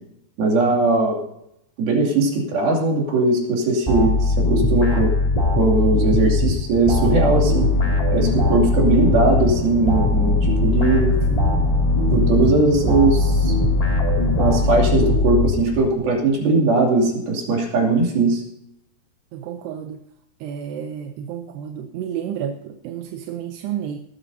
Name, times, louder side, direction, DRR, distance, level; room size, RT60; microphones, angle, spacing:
voice 1, 0.4-1.2 1.8-5.1 5.6-7.7 8.1-11.1 12.1-13.5 14.4-18.4, right 3 dB, 65° right, -1 dB, 4.5 m, -19 dB
sound 1, 3.9-16.1, left 3 dB, 15° left, 1.4 m, -20 dB
sound 2, 7.0-15.2, right 1 dB, 60° left, 2.8 m, -28 dB
voice 2, 11.3-11.7 12.2-12.4 19.3-20.0 20.4-24.0, right 8 dB, 85° right, 5 dB, 2.8 m, -31 dB
19.0 x 13.5 x 2.8 m, 0.79 s
omnidirectional pair, 4.6 m